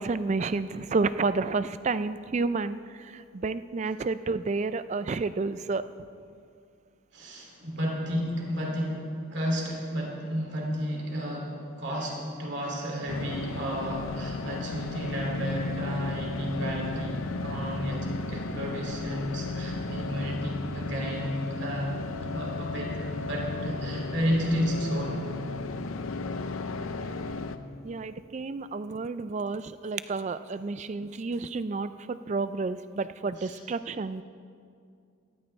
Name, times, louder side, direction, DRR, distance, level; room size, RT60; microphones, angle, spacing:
voice 1, 0.0-5.8 27.8-34.2, right 3 dB, 35° right, 13 dB, 0.3 m, -30 dB
voice 2, 7.1-25.2 33.4-33.6, equal, 55° right, -1 dB, 2.5 m, -32 dB
sound 1, 13.1-27.6, left 3 dB, 80° left, 0.6 m, -34 dB
17.5 x 14.0 x 3.2 m, 2.4 s
head